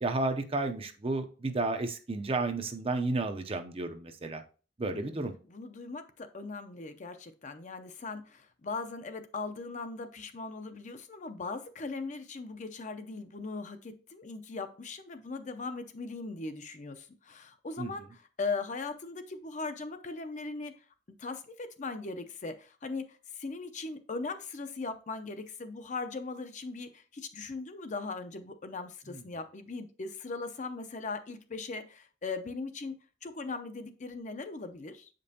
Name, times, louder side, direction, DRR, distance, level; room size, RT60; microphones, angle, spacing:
voice 1, 0.0-4.4 4.8-5.3 17.8-17.9 29.1-29.2, right 2 dB, 30° right, 7 dB, 0.6 m, -32 dB
voice 2, 5.5-20.7 21.2-32.9 33.2-35.1, left 3 dB, 40° left, 8 dB, 0.6 m, -39 dB
7.6 x 5.2 x 2.8 m, 0.37 s
head